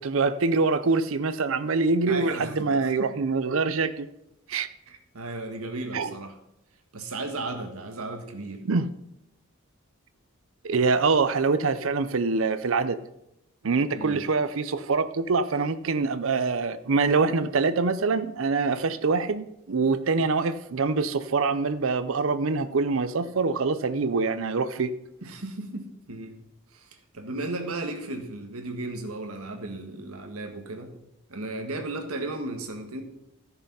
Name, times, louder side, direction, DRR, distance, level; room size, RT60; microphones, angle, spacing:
voice 1, 0.0-4.1 4.5-4.7 5.9-6.1 8.7-8.9 10.6-13.0 13.6-25.0, right 4 dB, 65° right, 0.6 m, -25 dB
voice 2, 2.1-3.1 4.9-6.3 6.9-8.6 13.9-14.2 25.2-26.4 26.7-30.9 31.3-33.0, right 2 dB, 80° right, 1.6 m, -35 dB
13.5 x 6.8 x 5.5 m
head